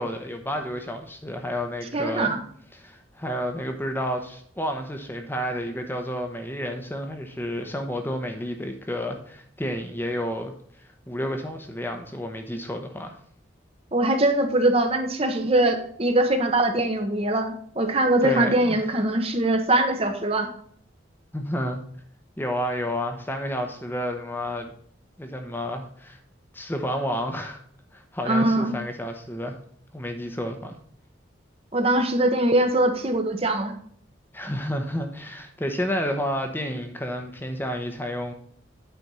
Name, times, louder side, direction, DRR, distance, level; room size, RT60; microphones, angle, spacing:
voice 1, 0.0-2.4 2.7-13.2 18.2-18.8 21.3-21.8 22.4-24.7 25.2-26.2 26.5-27.6 27.9-29.6 29.9-30.8 34.3-38.3, equal, 10° left, 4 dB, 0.8 m, -30 dB
voice 2, 1.9-2.4 13.9-20.5 28.2-28.7 31.7-33.7, right 1 dB, 30° right, 6 dB, 1.0 m, -22 dB
9.3 x 4.3 x 5.5 m, 0.63 s
head